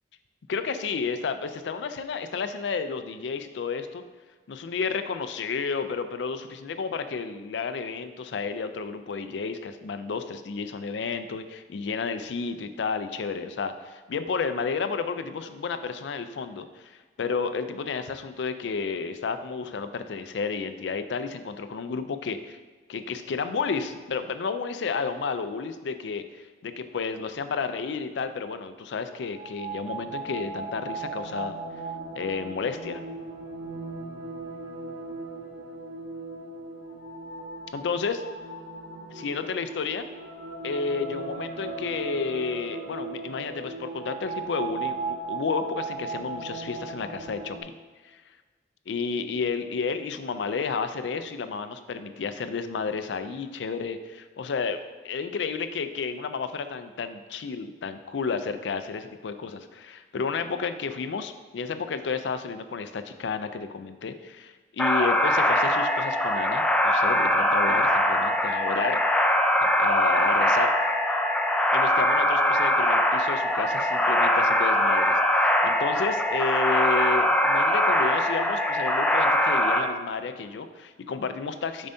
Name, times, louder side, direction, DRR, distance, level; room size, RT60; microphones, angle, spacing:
voice 1, 0.5-4.0 4.5-22.6 22.9-31.5 32.1-33.0 37.7-38.2 39.1-40.1 40.6-47.7 48.9-69.0 69.8-70.7 71.7-81.9, left 5 dB, 80° left, 10 dB, 0.4 m, -31 dB
sound 1, 29.2-47.6, right 3 dB, 85° right, 1.0 m, -37 dB
sound 2, 64.8-79.8, left 1 dB, 5° left, 0.4 m, -22 dB
6.8 x 5.4 x 2.7 m, 1.4 s
head